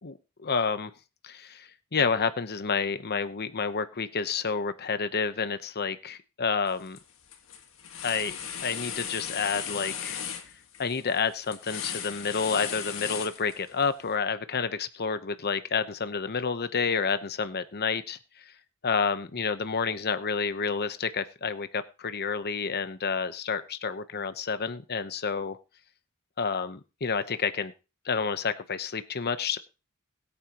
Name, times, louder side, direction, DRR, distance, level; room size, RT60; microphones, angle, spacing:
voice 1, 0.4-0.9 1.2-7.0 8.0-10.2 10.8-18.2 18.8-25.6 26.4-27.7 28.0-29.6, left 5 dB, 45° left, 0.9 m, -29 dB
sound 1, 6.7-7.0 7.3-13.8, left 8 dB, 65° left, 1.7 m, -37 dB
21.5 x 9.0 x 3.0 m
head